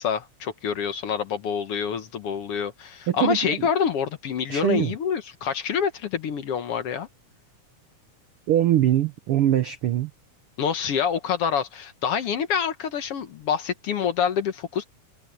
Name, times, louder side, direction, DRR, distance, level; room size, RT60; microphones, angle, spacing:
voice 1, 0.0-7.1 10.6-14.8, left 7 dB, 60° left, 1.7 m, -26 dB
voice 2, 3.1-3.7 4.5-4.9 8.5-10.1, right 11 dB, 85° right, 1.2 m, -22 dB
omnidirectional pair, 3.7 m